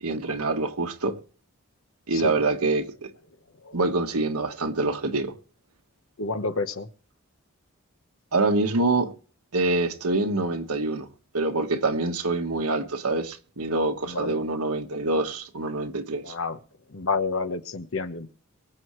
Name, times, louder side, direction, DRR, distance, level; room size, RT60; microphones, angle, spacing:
voice 1, 0.0-1.2 2.1-3.1 3.7-5.3 8.3-9.1 9.5-11.1 11.3-16.3, right 3 dB, 90° right, 1.4 m, -25 dB
voice 2, 6.2-6.9 14.1-14.4 16.2-16.6 16.9-18.3, left 4 dB, 65° left, 1.1 m, -29 dB
23.5 x 7.9 x 3.2 m
head